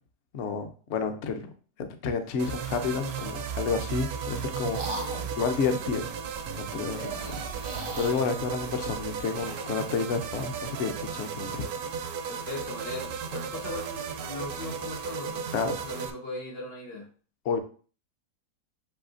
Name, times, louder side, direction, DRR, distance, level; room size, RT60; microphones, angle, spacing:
voice 1, 0.3-1.5 1.8-5.0 5.3-6.1 6.5-7.2 7.6-11.6 15.5-15.8 17.4-17.6, left 5 dB, 65° left, 0.7 m, -30 dB
sound 1, 2.4-16.1, right 6 dB, 70° right, 0.9 m, -35 dB
sound 2, 2.8-3.3 4.0-5.4 6.8-9.9, right 2 dB, 35° right, 0.5 m, -41 dB
voice 2, 4.9-5.3 12.3-17.1, left 2 dB, 90° left, 2.0 m, -39 dB
7.1 x 2.7 x 2.5 m
omnidirectional pair, 1.9 m